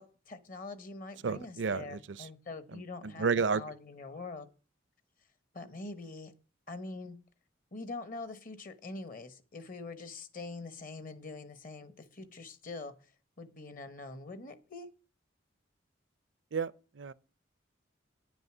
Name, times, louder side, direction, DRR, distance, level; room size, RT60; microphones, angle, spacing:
voice 1, 0.0-3.3 3.5-4.5 5.5-6.3 6.7-7.2 7.7-13.0 13.4-14.9, left 3 dB, 45° left, 1.1 m, -44 dB
voice 2, 1.2-2.0 2.7-3.6 16.5-17.1, right 5 dB, 75° right, 0.5 m, -32 dB
10.0 x 7.9 x 6.1 m
head